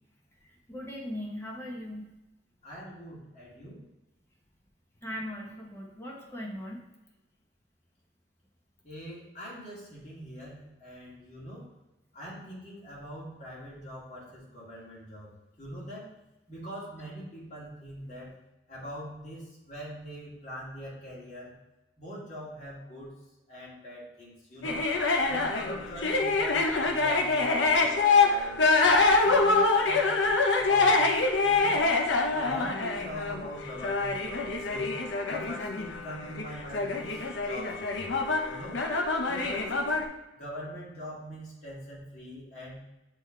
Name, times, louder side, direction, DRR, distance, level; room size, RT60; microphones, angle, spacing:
voice 1, 0.7-2.1 5.0-6.8, equal, 15° left, -2 dB, 1.1 m, -38 dB
voice 2, 2.6-3.8 8.8-11.7 12.1-15.3 15.6-16.1 16.5-18.3 18.7-21.5 22.0-23.1 23.5-24.8 25.3-28.6 29.2-32.0 32.3-35.0 35.3-38.8 39.3-39.9 40.3-42.8, equal, 40° left, -6 dB, 2.3 m, -43 dB
sound 1, 24.6-40.0, left 3 dB, 90° left, 0.7 m, -25 dB
7.4 x 3.4 x 4.4 m, 0.99 s
head